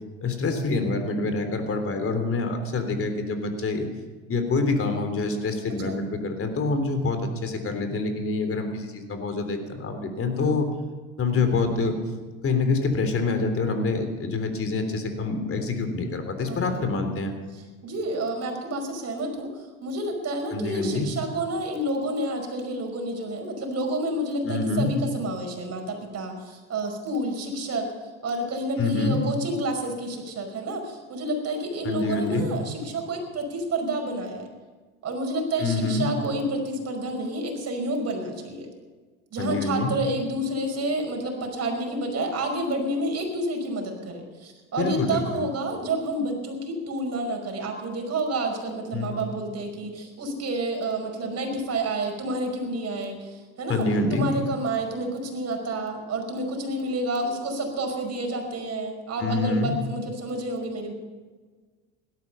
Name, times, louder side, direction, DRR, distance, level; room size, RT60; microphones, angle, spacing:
voice 1, 0.2-3.9 4.3-10.7 11.2-12.0 12.4-17.3 20.5-21.1 24.4-24.9 28.8-29.2 31.8-32.5 35.6-36.1 39.4-39.9 44.8-45.4 48.9-49.3 53.7-54.3 59.2-59.8, left 3 dB, 35° left, 7 dB, 3.5 m, -26 dB
voice 2, 16.4-16.8 17.5-27.9 28.2-34.5 35.0-38.7 39.3-60.9, right 1 dB, 40° right, 3 dB, 5.3 m, -29 dB
17.0 x 13.0 x 5.7 m, 1.4 s
hypercardioid pair, 80°, 38 cm